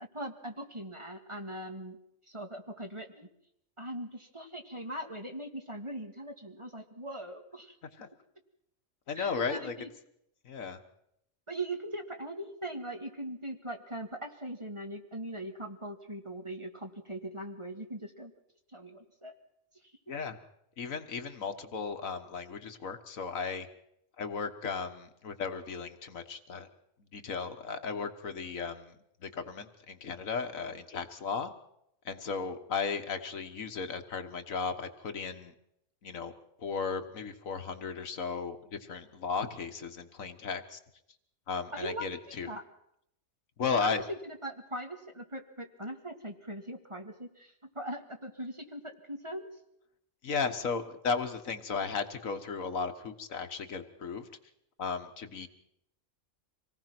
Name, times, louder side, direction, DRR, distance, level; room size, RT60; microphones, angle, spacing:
voice 1, 0.0-2.0 2.3-3.3 3.8-7.8 9.1-9.9 11.5-18.3 18.7-19.3 19.8-19.9 41.7-42.1 42.4-42.6 43.7-49.5, right 1 dB, 20° right, 3 dB, 1.9 m, -40 dB
voice 2, 9.1-9.7 10.4-10.8 20.1-20.4 20.8-23.7 24.2-26.7 27.1-31.5 32.1-35.5 36.0-36.3 36.6-40.8 41.5-42.5 43.6-44.0 50.2-54.3 54.8-55.5, left 5 dB, 75° left, 7 dB, 1.8 m, -35 dB
25.5 x 18.0 x 6.0 m, 0.76 s
omnidirectional pair, 1.4 m